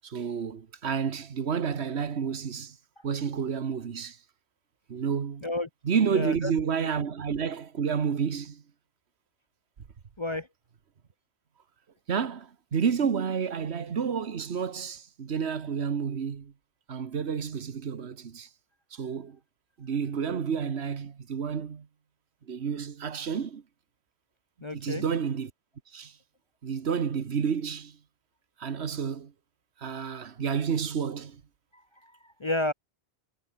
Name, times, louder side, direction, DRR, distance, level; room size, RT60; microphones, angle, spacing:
voice 1, 0.0-2.8 3.0-4.2 4.9-5.4 5.8-8.6 12.1-16.5 16.9-18.5 18.9-19.4 19.8-21.9 22.5-23.6 24.7-25.5 25.9-26.2 26.6-28.0 28.6-29.3 29.8-31.4, right 6 dB, 80° right, 1.5 m, -30 dB
voice 2, 6.1-6.5 10.2-10.5 24.6-25.0 31.7-32.7, left 2 dB, 30° left, 0.8 m, -31 dB
omnidirectional pair, 1.1 m